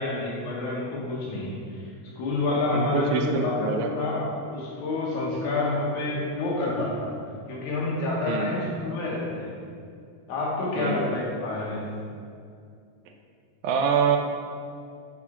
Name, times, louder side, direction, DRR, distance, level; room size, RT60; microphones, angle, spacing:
voice 1, 0.0-1.8 2.2-7.1 7.5-9.5 10.3-11.8, left 2 dB, 85° left, -4 dB, 2.5 m, -28 dB
voice 2, 2.7-3.9 8.3-8.5 10.8-11.0 13.6-14.2, right 6 dB, 85° right, 4 dB, 2.0 m, -25 dB
6.7 x 4.3 x 3.6 m, 2.3 s
omnidirectional pair, 3.4 m